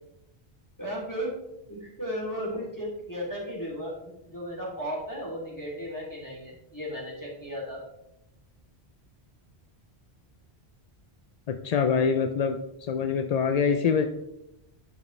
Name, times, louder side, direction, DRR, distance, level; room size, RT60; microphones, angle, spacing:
voice 1, 0.8-1.4 1.7-7.8, equal, 15° left, -5 dB, 2.8 m, -35 dB
voice 2, 11.5-14.1, left 6 dB, 55° left, 7 dB, 0.4 m, -25 dB
11.0 x 5.7 x 3.2 m, 0.87 s
omnidirectional pair, 1.1 m